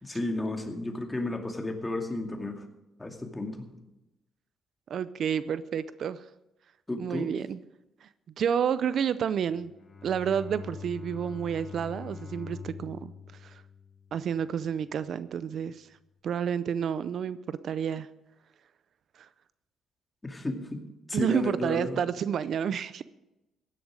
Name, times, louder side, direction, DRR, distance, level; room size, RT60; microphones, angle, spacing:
voice 1, 0.0-2.6 3.0-3.7 6.9-7.4 20.2-20.8 21.1-22.0, left 2 dB, 15° left, 3 dB, 2.3 m, -33 dB
voice 2, 4.9-6.2 7.0-7.6 8.0-8.1 8.4-9.7 10.0-13.1 13.4-13.6 14.1-15.9 16.2-18.1 21.1-23.0, right 8 dB, 60° right, 15 dB, 0.5 m, -30 dB
Bowed string instrument, 9.4-14.7, left 6 dB, 45° left, 2.1 m, -44 dB
15.5 x 11.0 x 5.0 m, 0.95 s
cardioid pair, 90°, 0 cm